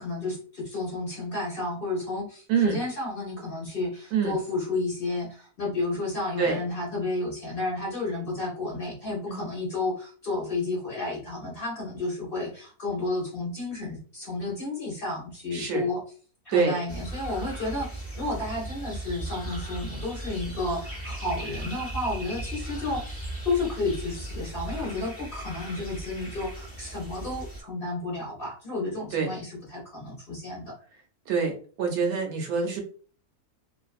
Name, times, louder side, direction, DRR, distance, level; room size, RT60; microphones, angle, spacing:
voice 1, 0.0-16.0 16.4-30.7, left 2 dB, 50° left, -4 dB, 0.8 m, -32 dB
voice 2, 2.5-2.8 4.1-4.4 6.4-6.6 9.3-9.4 15.5-15.8 16.5-16.7 29.1-29.3 31.3-32.8, right 6 dB, 75° right, 3 dB, 1.0 m, -25 dB
sound 1, 16.9-27.6, right 1 dB, 15° left, 0.5 m, -37 dB
2.5 x 2.3 x 2.4 m, 0.42 s
omnidirectional pair, 1.7 m